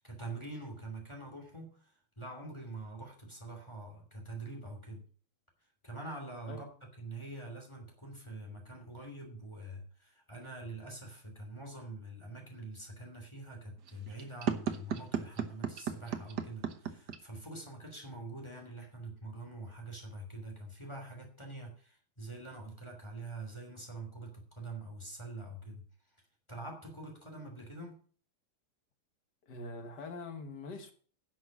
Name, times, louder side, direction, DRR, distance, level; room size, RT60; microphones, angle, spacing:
voice 1, 0.0-5.1 5.8-25.8 26.5-28.0, right 2 dB, 15° left, 2.7 m, -45 dB
sound 1, 13.8-17.2, right 8 dB, 60° right, 1.6 m, -34 dB
voice 2, 29.4-30.9, left 3 dB, 60° left, 1.8 m, -43 dB
11.0 x 6.2 x 7.1 m
omnidirectional pair, 2.2 m